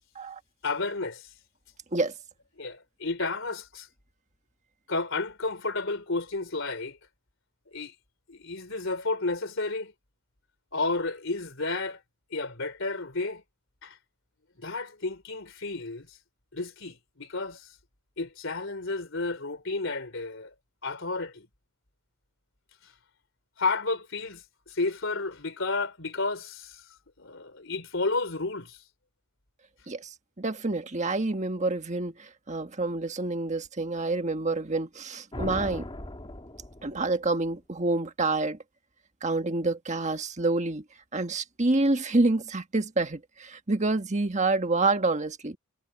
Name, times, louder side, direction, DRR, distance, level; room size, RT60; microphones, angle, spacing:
voice 1, 0.6-1.3 2.6-3.9 4.9-7.0 7.7-7.9 8.3-9.9 10.7-12.0 12.3-13.4 13.8-14.0 14.6-16.2 16.5-17.7 18.2-20.5 20.8-21.5 22.8-22.9 23.6-28.8, left 3 dB, 60° left, 4.0 m, -32 dB
voice 2, 29.9-35.9 36.8-38.6 39.2-40.8 41.1-45.6, right 2 dB, 35° right, 1.4 m, -27 dB
sound 1, 35.3-37.3, left 1 dB, 25° left, 2.0 m, -38 dB
head